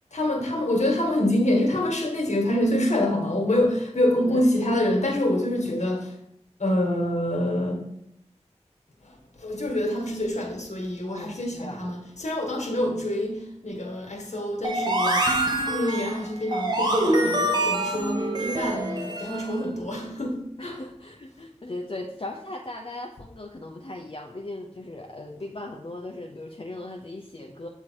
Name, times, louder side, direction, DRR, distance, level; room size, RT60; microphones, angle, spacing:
voice 1, 0.1-6.1 6.6-7.8 9.0-15.3 15.6-20.7, left 1 dB, 70° left, 0 dB, 1.8 m, -26 dB
voice 2, 4.1-4.5 11.2-11.9 20.6-27.7, left 2 dB, 45° left, 1 dB, 0.7 m, -38 dB
sound 1, 14.6-19.5, right 1 dB, 35° right, 1.3 m, -25 dB
8.4 x 3.5 x 4.6 m, 0.75 s
wide cardioid pair, 45°, 12 cm